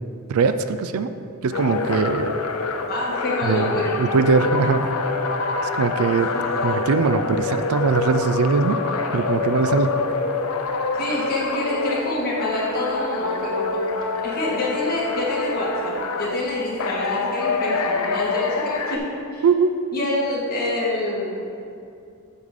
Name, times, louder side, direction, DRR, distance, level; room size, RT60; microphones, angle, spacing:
voice 1, 0.3-1.1 1.4-2.4 3.4-5.0 5.6-6.3 6.6-8.8 9.1-9.9 19.4-19.7, right 5 dB, 80° right, 11 dB, 0.4 m, -21 dB
sound 1, 1.5-12.1 12.4-16.4 16.8-19.0, left 4 dB, 85° left, 0.5 m, -26 dB
voice 2, 2.9-4.0 6.3-6.7 10.9-13.9 14.2-19.0 19.3-19.4 19.9-21.5, left 1 dB, 45° left, -6 dB, 1.8 m, -27 dB
8.4 x 3.7 x 6.4 m, 2.6 s
head